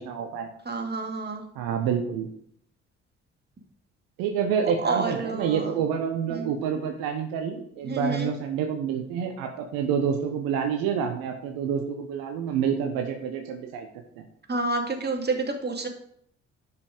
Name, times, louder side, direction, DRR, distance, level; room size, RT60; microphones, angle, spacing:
voice 1, 0.0-0.5 1.5-2.3 4.2-13.9 14.2-14.3, right 7 dB, 70° right, 4 dB, 1.1 m, -28 dB
voice 2, 0.7-1.5 4.8-5.7 6.3-6.5 7.8-8.3 14.5-15.9, right 3 dB, 25° right, 3 dB, 2.4 m, -29 dB
10.5 x 5.8 x 5.1 m, 0.66 s
hypercardioid pair, 45°, 36 cm